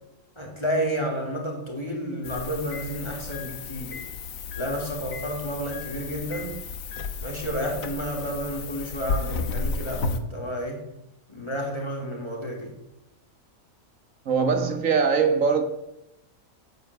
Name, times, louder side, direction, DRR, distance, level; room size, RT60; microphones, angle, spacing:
voice 1, 0.4-4.0 4.5-6.6 7.2-10.8 11.3-12.7, equal, 20° left, 2.9 m, -31 dB
sound 1, 2.2-10.2, left 4 dB, 75° left, 1.4 m, -33 dB
voice 2, 14.3-15.6, right 5 dB, 70° right, 1.6 m, -21 dB
9.5 x 7.9 x 7.8 m
omnidirectional pair, 1.4 m